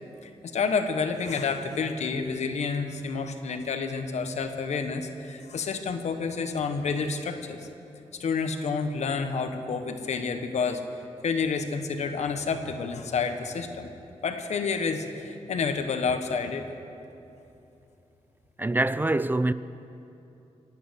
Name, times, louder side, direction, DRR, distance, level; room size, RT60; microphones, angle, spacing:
voice 1, 0.2-7.6 8.2-10.8 11.2-13.9 14.2-16.6, left 5 dB, 80° left, 1.3 m, -29 dB
voice 2, 18.6-19.5, right 2 dB, 15° right, 0.4 m, -24 dB
25.0 x 9.0 x 6.5 m
wide cardioid pair, 95°, 11 cm